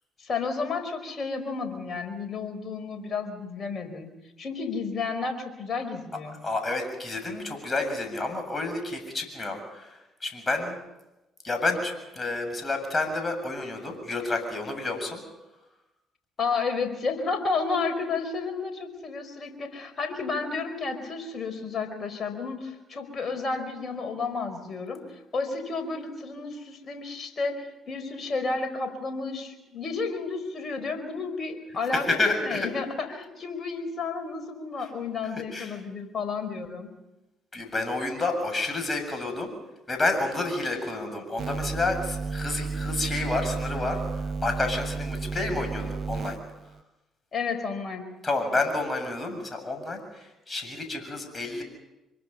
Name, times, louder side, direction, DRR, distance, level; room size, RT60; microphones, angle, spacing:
voice 1, 0.2-4.1 4.4-6.4 16.4-36.9 47.3-48.0, left 4 dB, 45° left, 7 dB, 4.8 m, -32 dB
voice 2, 6.4-10.8 11.4-15.2 31.9-32.7 35.5-35.7 37.5-39.5 39.9-46.4 48.2-51.6, left 2 dB, 30° left, 5 dB, 7.4 m, -29 dB
sound 1, 41.4-46.8, right 4 dB, 50° right, 1.0 m, -32 dB
25.0 x 22.5 x 5.7 m, 0.99 s
hypercardioid pair, 50°, 0 cm